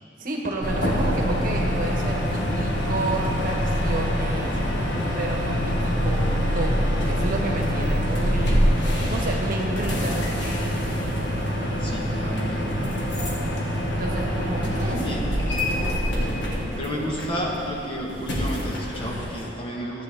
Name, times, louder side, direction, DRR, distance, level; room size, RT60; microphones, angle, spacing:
voice 1, 0.2-4.5 5.2-8.7 9.1-10.2 14.0-15.2, right 2 dB, 50° right, 0 dB, 1.2 m, -31 dB
sound 1, 0.6-19.5, equal, 70° left, 1.7 m, -25 dB
voice 2, 11.8-12.9 14.5-15.3 16.8-20.0, equal, 30° left, -2 dB, 1.3 m, -32 dB
14.0 x 8.3 x 3.5 m, 2.9 s
head